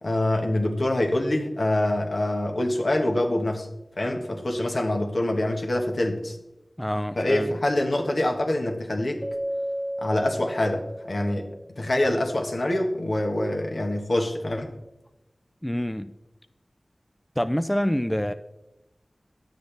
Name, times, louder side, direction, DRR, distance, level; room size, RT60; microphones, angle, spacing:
voice 1, 0.0-3.7 4.0-6.4 7.2-9.2 10.0-11.5 11.8-14.7, left 1 dB, 65° left, 2 dB, 1.3 m, -25 dB
voice 2, 6.8-7.5 15.6-16.1 17.4-18.3, equal, 10° left, 11 dB, 0.3 m, -26 dB
Keyboard (musical), 9.2-11.7, equal, 10° right, 1.6 m, -33 dB
10.5 x 7.8 x 3.4 m, 0.95 s
wide cardioid pair, 55°, 0 cm